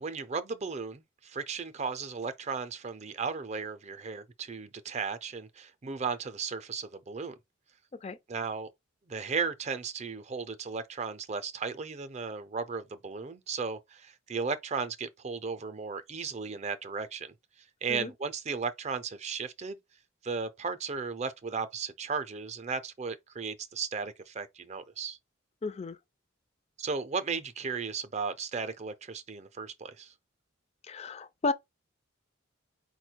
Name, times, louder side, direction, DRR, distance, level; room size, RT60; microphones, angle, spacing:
voice 1, 0.0-7.3 8.3-8.7 9.1-17.3 17.8-19.8 20.2-25.2 26.8-30.1, right 5 dB, 35° right, 0.5 m, -35 dB
voice 2, 25.6-26.0 30.8-31.5, left 3 dB, 30° left, 0.4 m, -33 dB
4.8 x 2.2 x 4.4 m
head